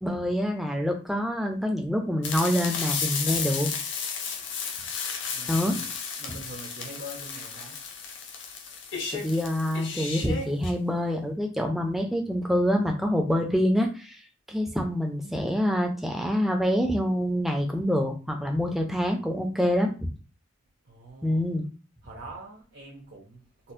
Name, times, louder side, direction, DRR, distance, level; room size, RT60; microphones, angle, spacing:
voice 1, 0.0-3.7 5.5-5.8 9.1-14.2 14.5-20.1 21.2-21.7, equal, ahead, 0.4 m, -26 dB
sound 1, 2.2-10.7, left 5 dB, 55° left, 0.6 m, -33 dB
voice 2, 5.3-5.9 6.2-7.8 20.8-21.4 22.0-23.7, right 1 dB, 55° right, 0.7 m, -44 dB
4.1 x 2.1 x 2.6 m
head